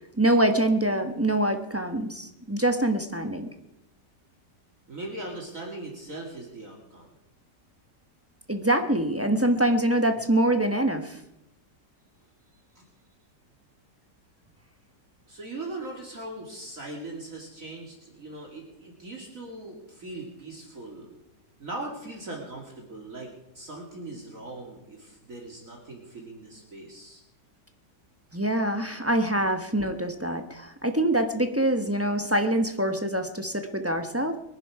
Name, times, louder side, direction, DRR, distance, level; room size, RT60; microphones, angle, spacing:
voice 1, 0.2-3.5 8.5-11.2 28.3-34.4, right 1 dB, 10° right, 6 dB, 0.9 m, -25 dB
voice 2, 4.9-7.1 12.8-12.9 15.3-21.1 21.6-23.3 23.5-27.2, right 2 dB, 50° right, -1 dB, 2.8 m, -40 dB
23.0 x 10.5 x 4.8 m, 0.88 s
omnidirectional pair, 1.9 m